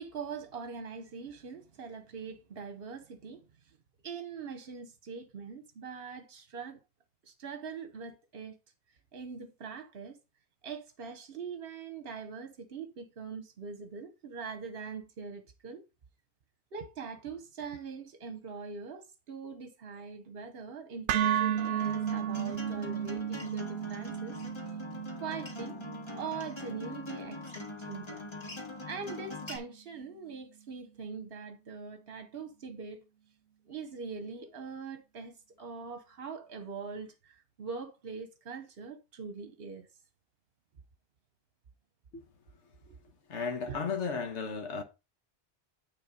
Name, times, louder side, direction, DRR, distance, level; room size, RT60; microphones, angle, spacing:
voice 1, 0.0-3.8 4.0-6.8 7.2-8.6 9.1-10.2 10.6-15.8 16.7-24.4 24.7-24.8 25.2-25.8 26.1-28.3 28.9-33.0 33.7-39.9 42.9-43.0 43.7-43.8, right 5 dB, 60° right, 1.1 m, -42 dB
sound 1, 21.1-29.2, right 10 dB, 80° right, 0.9 m, -35 dB
Acoustic guitar, 21.6-29.6, left 3 dB, 25° left, 1.4 m, -43 dB
voice 2, 43.3-44.8, left 5 dB, 85° left, 1.4 m, -34 dB
9.5 x 4.0 x 5.0 m
omnidirectional pair, 1.2 m